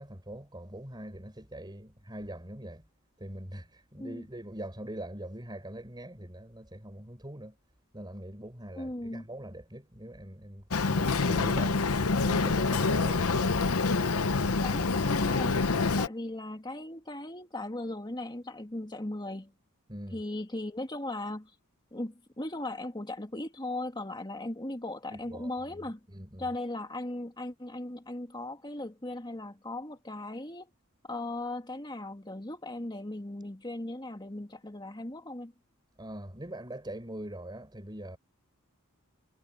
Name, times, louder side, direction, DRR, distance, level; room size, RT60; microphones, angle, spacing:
voice 1, 0.0-2.8 3.2-7.6 7.9-11.9 12.2-13.6 19.9-20.2 25.1-25.5 26.1-26.5 36.0-38.2, right 1 dB, 20° right, 5.2 m, -43 dB
voice 2, 8.8-9.3 14.6-15.6 16.0-19.5 20.1-21.5 21.9-26.0 26.4-30.7 31.0-35.5, left 1 dB, 20° left, 2.2 m, -38 dB
Boat Water vehicle, 10.7-16.1, left 3 dB, 90° left, 0.9 m, -26 dB
head